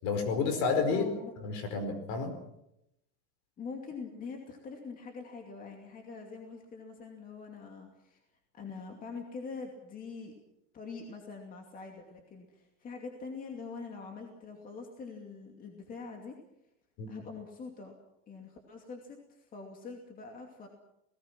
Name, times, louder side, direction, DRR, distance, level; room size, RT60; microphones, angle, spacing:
voice 1, 0.0-1.1 1.4-2.3 17.0-17.1, left 4 dB, 50° left, 8 dB, 4.9 m, -30 dB
voice 2, 0.9-1.3 3.6-8.2 8.5-10.3 10.7-16.4 17.1-17.9 18.3-20.7, left 4 dB, 25° left, 3 dB, 2.6 m, -44 dB
29.5 x 19.0 x 6.1 m, 0.85 s
supercardioid pair, 165°, 35 cm